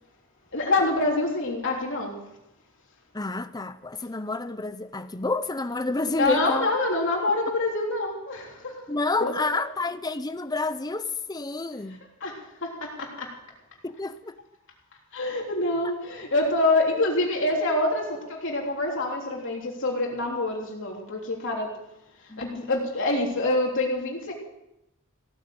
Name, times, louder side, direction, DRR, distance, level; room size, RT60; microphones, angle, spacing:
voice 1, 0.5-2.2 6.2-8.8 9.2-9.6 12.2-13.3 15.1-21.7 22.2-24.3, left 2 dB, 60° left, 3.3 m, -26 dB
voice 2, 3.1-6.7 8.9-12.0 13.8-14.4 22.3-22.7, left 3 dB, 20° left, 0.7 m, -29 dB
16.0 x 9.3 x 7.9 m
head